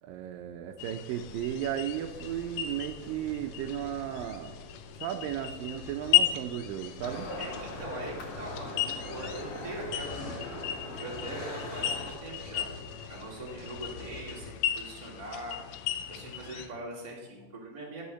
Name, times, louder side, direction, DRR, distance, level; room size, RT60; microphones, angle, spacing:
voice 1, 0.0-4.6 5.0-7.3, right 11 dB, 80° right, 6 dB, 2.3 m, -35 dB
sound 1, 0.8-16.7, left 12 dB, 80° left, 2.1 m, -35 dB
sound 2, 1.1-14.5, left 3 dB, 45° left, 3.3 m, -47 dB
sound 3, 7.0-12.1, left 2 dB, 60° left, 3.3 m, -41 dB
voice 2, 7.4-10.7 11.0-12.7 13.1-15.6 16.1-18.0, right 1 dB, 15° right, -3 dB, 1.9 m, -42 dB
11.5 x 6.4 x 6.9 m, 1.2 s
omnidirectional pair, 4.1 m